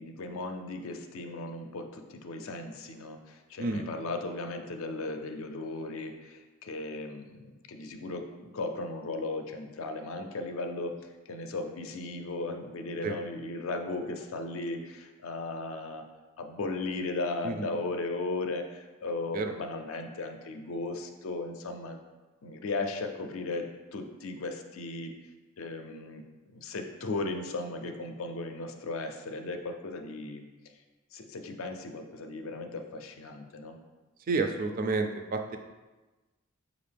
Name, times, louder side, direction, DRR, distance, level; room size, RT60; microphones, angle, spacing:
voice 1, 0.0-10.9 11.3-16.0 16.4-22.0 22.4-25.1 25.6-26.2 26.5-30.5 31.1-33.8, left 2 dB, 70° left, 5 dB, 0.4 m, -36 dB
voice 2, 34.3-35.6, right 3 dB, 40° right, 5 dB, 0.4 m, -30 dB
5.4 x 2.5 x 3.3 m, 1.2 s
head